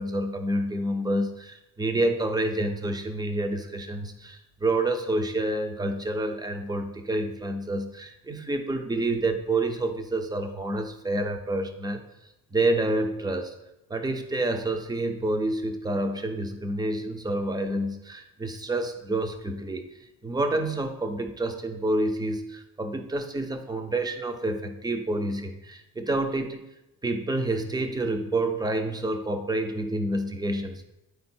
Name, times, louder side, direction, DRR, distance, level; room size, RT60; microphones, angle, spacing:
voice 1, 0.0-12.0 12.5-13.5 13.9-19.8 20.2-26.6 27.0-30.8, right 2 dB, 10° right, 7 dB, 0.5 m, -28 dB
9.5 x 4.5 x 4.3 m, 0.89 s
wide cardioid pair, 175°, 42 cm